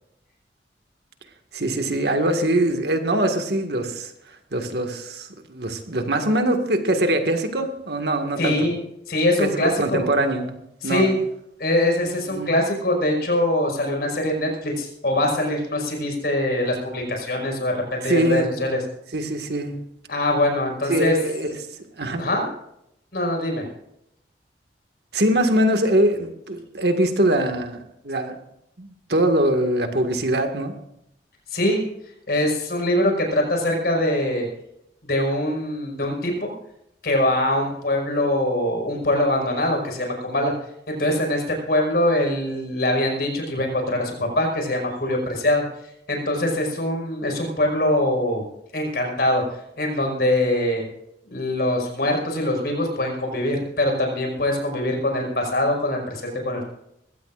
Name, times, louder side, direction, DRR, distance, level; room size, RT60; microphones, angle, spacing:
voice 1, 1.5-4.1 4.5-8.6 9.4-10.5 10.8-11.1 12.3-12.5 18.0-18.5 19.1-19.8 20.9-21.5 22.0-22.2 25.1-27.8 28.0-28.4 28.8-30.7, right 1 dB, 65° right, 5 dB, 1.9 m, -22 dB
voice 2, 8.4-8.8 9.1-10.0 10.8-11.2 11.6-18.8 20.1-21.2 22.2-22.5 23.1-23.7 31.5-31.8 32.3-34.5 35.0-36.5 37.0-40.5 40.9-45.6 46.1-48.4 48.7-49.4 49.8-50.8 51.3-56.6, left 1 dB, 60° left, 2 dB, 5.4 m, -23 dB
21.5 x 16.0 x 2.5 m, 0.79 s
head